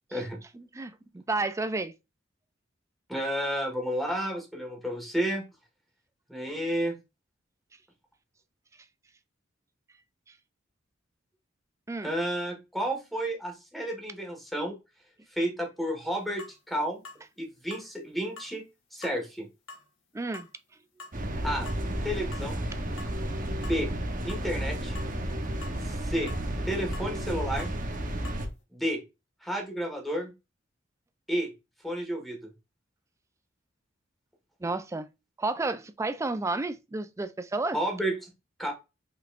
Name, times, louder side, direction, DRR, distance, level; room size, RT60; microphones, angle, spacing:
voice 1, 0.5-1.9 11.9-12.1 20.1-20.5 34.6-35.1 35.4-37.8, right 3 dB, 15° right, 0.3 m, -31 dB
voice 2, 3.1-5.4 6.3-6.9 12.0-14.7 15.3-17.0 17.4-18.6 18.9-19.5 21.4-21.7 22.0-22.6 23.6-23.9 24.2-24.9 25.8-26.3 26.6-27.7 28.7-29.0 29.4-30.3 31.3-31.5 31.8-32.4 37.7-38.3 38.6-38.7, equal, ahead, 1.5 m, -31 dB
sound 1, 16.4-16.6 17.0-17.2 17.7-17.9 18.4-18.5 19.0-19.2 19.7-19.9 20.3-20.5 21.0-21.2 21.7-21.8 22.3-22.5 23.0-23.3 23.6-23.8 24.3-24.5 24.9-25.1 25.6-25.8 26.3-26.4 26.9-27.1 27.6-27.8 28.2-28.4, left 3 dB, 75° left, 1.3 m, -46 dB
sound 2, 21.1-28.5, right 1 dB, 45° right, 0.9 m, -32 dB
5.3 x 4.1 x 2.4 m
head